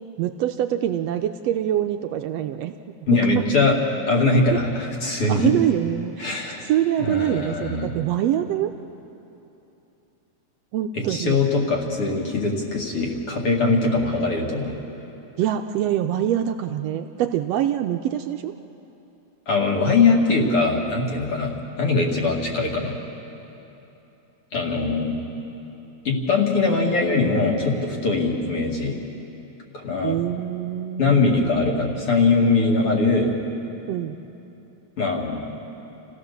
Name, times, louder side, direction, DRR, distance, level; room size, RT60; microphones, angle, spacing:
voice 1, 0.2-2.7 3.1-3.4 4.5-4.6 5.3-8.7 10.7-11.4 15.4-18.5 30.0-31.8 33.8-34.2, right 11 dB, 80° right, 7 dB, 1.5 m, -25 dB
voice 2, 3.1-3.8 4.1-5.5 6.2-6.7 7.0-7.9 10.9-14.7 19.5-22.9 24.5-25.2 26.0-29.0 29.7-30.2 31.0-33.3 35.0-35.5, left 3 dB, 50° left, 0 dB, 3.0 m, -21 dB
28.5 x 16.0 x 6.8 m, 3.0 s
omnidirectional pair, 3.4 m